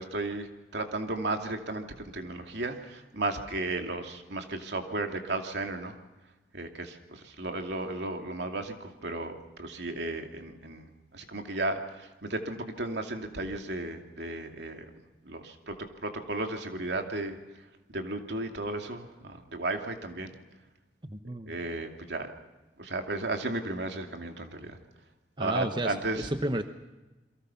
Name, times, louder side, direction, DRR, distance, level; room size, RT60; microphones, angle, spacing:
voice 1, 0.0-6.0 6.5-9.3 9.6-14.9 15.2-17.4 17.9-20.3 21.5-22.3 22.8-24.8 25.4-26.3, right 2 dB, 75° right, 4 dB, 2.6 m, -34 dB
voice 2, 21.1-21.5 25.4-26.6, right 1 dB, 25° right, 8 dB, 1.0 m, -32 dB
28.5 x 23.0 x 5.8 m, 1.1 s
head